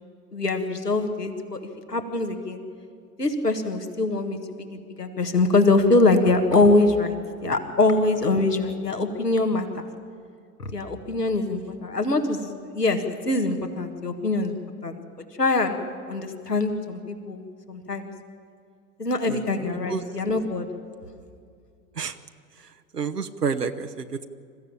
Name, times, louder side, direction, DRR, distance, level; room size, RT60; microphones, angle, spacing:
voice 1, 0.3-1.6 1.9-2.6 3.2-7.1 7.4-9.9 10.6-14.5 14.8-15.0 15.4-15.8 16.1-17.4 17.7-18.1 19.0-20.7, left 2 dB, 85° left, 5 dB, 1.9 m, -23 dB
voice 2, 22.9-24.2, right 5 dB, 85° right, 6 dB, 0.9 m, -28 dB
27.0 x 15.0 x 8.8 m, 2.3 s
figure-of-eight pair, 80°, 46 cm